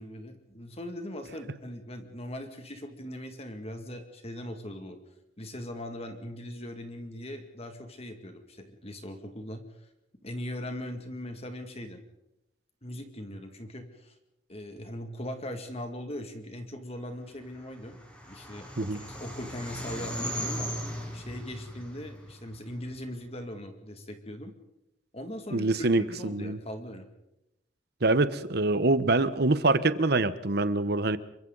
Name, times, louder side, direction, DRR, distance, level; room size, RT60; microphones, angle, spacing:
voice 1, 0.0-5.0 5.4-9.6 10.2-12.0 12.8-14.1 14.5-18.0 18.2-20.7 21.1-24.5 25.1-27.1, left 1 dB, 35° left, 5 dB, 2.3 m, -40 dB
sound 1, 17.5-23.0, equal, 5° left, 5.1 m, -38 dB
voice 2, 25.5-26.6 28.0-31.2, right 2 dB, 60° right, 14 dB, 1.1 m, -25 dB
28.0 x 24.0 x 4.0 m, 0.87 s
head